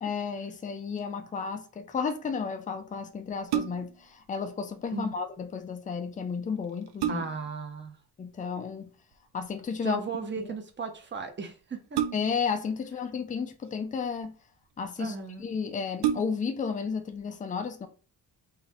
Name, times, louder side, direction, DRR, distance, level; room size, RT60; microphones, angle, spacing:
voice 1, 0.0-7.2 8.2-8.9 9.3-10.0 10.4-10.5 12.1-14.3 14.8-17.9, left 5 dB, 20° left, 0.3 m, -33 dB
sound 1, 3.3-4.1 6.1-6.2 6.6-7.6 9.1-9.5 11.9-12.6 13.5-14.2 15.0-15.1 15.4-15.5 15.9-16.6 17.1-17.2, right 10 dB, 75° right, 0.6 m, -31 dB
voice 2, 7.1-8.0 9.8-12.0 15.0-15.4, right 5 dB, 30° right, 0.6 m, -36 dB
4.0 x 2.6 x 4.1 m
wide cardioid pair, 180°, 40 cm